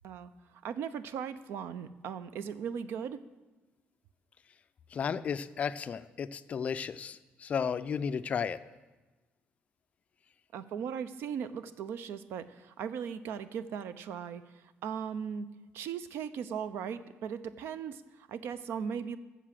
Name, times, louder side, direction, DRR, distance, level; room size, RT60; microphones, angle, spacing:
voice 1, 0.6-3.2 10.5-15.5 15.7-19.2, right 7 dB, 80° right, 14 dB, 0.6 m, -38 dB
voice 2, 4.9-8.6, left 6 dB, 35° left, 13 dB, 0.4 m, -33 dB
11.0 x 6.9 x 7.5 m, 1.2 s
cardioid pair, 170°, 4 cm